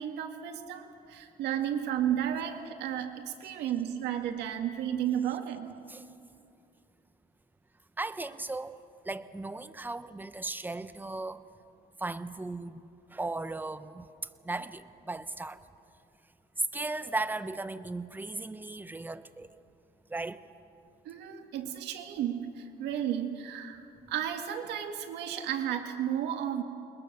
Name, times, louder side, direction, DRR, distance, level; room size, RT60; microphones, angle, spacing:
voice 1, 0.0-5.8 21.0-23.8 24.1-26.6, right 10 dB, 85° right, 5 dB, 2.1 m, -33 dB
voice 2, 8.0-8.7 9.0-11.4 12.0-12.8 13.1-14.1 14.4-15.6 16.7-19.5 20.1-20.4, right 2 dB, 10° right, 12 dB, 0.9 m, -36 dB
28.5 x 21.0 x 6.9 m, 2.6 s
cardioid pair, 110°, 17 cm